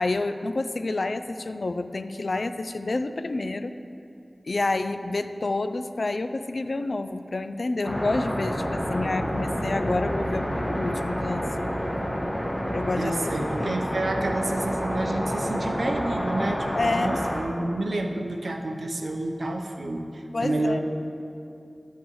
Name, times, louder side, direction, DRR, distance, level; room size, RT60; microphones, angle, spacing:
voice 1, 0.0-3.7 4.4-11.7 12.7-13.1 13.6-13.8 16.7-17.2 20.3-20.8, left 2 dB, 70° left, 10 dB, 0.4 m, -29 dB
sound 1, 7.8-17.4, equal, 15° left, 1.6 m, -29 dB
voice 2, 13.0-20.8, right 2 dB, 90° right, 3 dB, 0.7 m, -29 dB
13.0 x 8.3 x 3.1 m, 2.6 s
wide cardioid pair, 65°, 0 cm